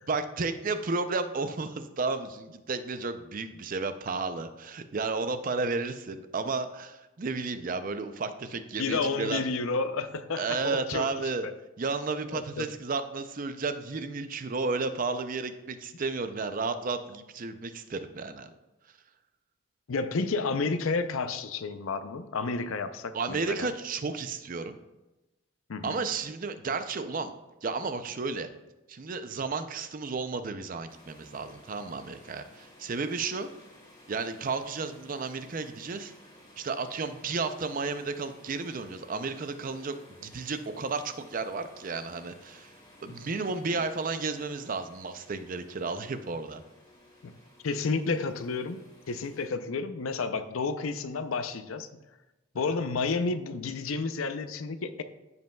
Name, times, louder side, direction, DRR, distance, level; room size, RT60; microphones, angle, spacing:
voice 1, 0.1-9.4 10.4-11.5 11.8-18.5 23.1-24.8 25.8-27.3 27.6-28.5 28.9-33.5 34.1-36.1 36.6-40.0 40.2-42.7 43.0-46.6, right 4 dB, 40° right, 10 dB, 0.5 m, -32 dB
voice 2, 8.8-11.1 11.4-11.5 12.3-12.7 19.9-23.7 25.7-26.0 47.2-47.3 47.6-48.8 49.1-51.9 52.5-55.0, left 4 dB, 75° left, 11 dB, 0.5 m, -31 dB
sound 1, 30.9-49.5, left 1 dB, 20° left, 2.0 m, -56 dB
14.5 x 5.4 x 2.3 m, 1.0 s
head